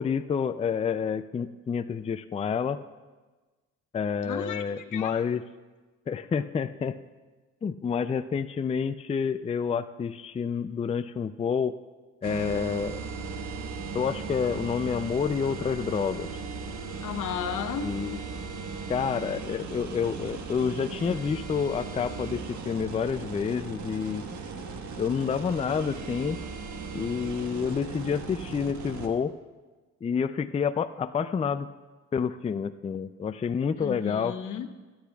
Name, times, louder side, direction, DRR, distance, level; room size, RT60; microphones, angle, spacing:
voice 1, 0.0-2.8 3.9-5.4 6.1-7.0 7.6-11.7 12.2-13.0 13.9-16.3 17.8-18.2 18.9-24.3 25.0-26.4 26.9-29.3 30.0-31.7 32.1-34.4, left 6 dB, 20° left, 12 dB, 0.4 m, -29 dB
voice 2, 4.2-5.2 17.0-17.9 33.8-34.7, left 8 dB, 80° left, 7 dB, 1.0 m, -34 dB
sound 1, 12.2-29.1, right 4 dB, 75° right, 1.4 m, -37 dB
26.5 x 10.0 x 2.3 m, 1.3 s
cardioid pair, 90°, 30 cm